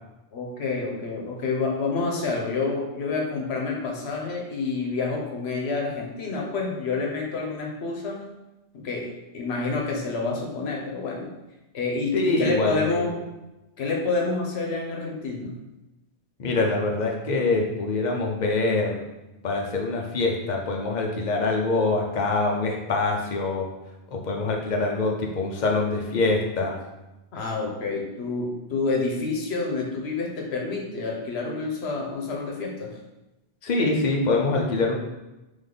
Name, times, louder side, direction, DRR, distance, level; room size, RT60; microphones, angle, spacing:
voice 1, 0.3-8.3 8.7-11.3 11.7-13.2 13.8-15.5 27.3-32.9, left 3 dB, 75° left, 0 dB, 1.1 m, -28 dB
voice 2, 12.1-13.0 16.4-19.0 19.4-23.7 24.1-26.8 33.6-34.9, left 3 dB, 45° left, 1 dB, 0.8 m, -24 dB
3.6 x 3.5 x 3.8 m, 0.99 s
omnidirectional pair, 1.1 m